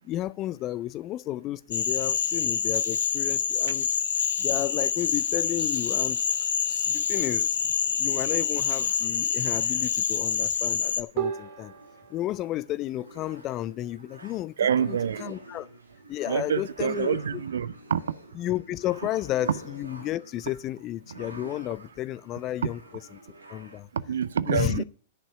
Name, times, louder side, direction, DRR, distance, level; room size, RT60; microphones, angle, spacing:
voice 1, 0.0-3.9 4.4-6.2 6.9-7.6 8.0-11.7 12.1-15.7 16.1-17.4 18.3-22.8 23.5-23.9 24.5-24.8, left 14 dB, 35° left, 0.4 m, -32 dB
Cricket / Frog, 1.7-11.0, left 8 dB, 65° left, 0.8 m, -26 dB
sound 1, 5.1-7.1 11.2-12.5, right 9 dB, 50° right, 2.7 m, -37 dB
sound 2, 8.5-23.8, right 2 dB, 85° right, 2.1 m, -48 dB
voice 2, 14.6-15.3 16.3-18.0 23.9-24.8, right 8 dB, 65° right, 0.5 m, -27 dB
10.5 x 5.5 x 8.2 m
figure-of-eight pair, 100°, 0 cm